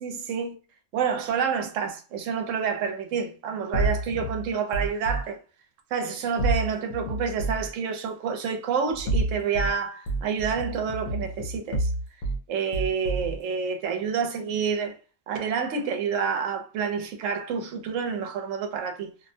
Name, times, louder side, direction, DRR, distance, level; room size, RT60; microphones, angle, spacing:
voice 1, 0.0-0.5 0.9-5.4 5.9-11.9 12.5-14.9 15.3-19.1, right 6 dB, 70° right, 0.9 m, -28 dB
sound 1, 3.7-5.2 6.4-7.7 8.9-9.7 10.1-12.4 12.7-13.4, right 2 dB, 90° left, 1.0 m, -28 dB
2.6 x 2.0 x 2.6 m
omnidirectional pair, 1.4 m